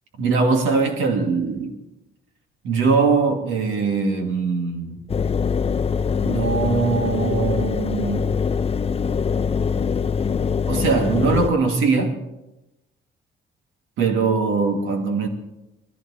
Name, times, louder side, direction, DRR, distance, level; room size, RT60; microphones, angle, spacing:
voice 1, 0.2-1.8 2.6-5.0 6.2-8.4 9.8-9.9 10.7-12.2 14.0-15.3, right 4 dB, 85° right, 2.3 m, -21 dB
Engine, 5.1-11.5, left 6 dB, 30° left, 0.6 m, -23 dB
20.5 x 14.0 x 4.2 m
cardioid pair, 90°, 20 cm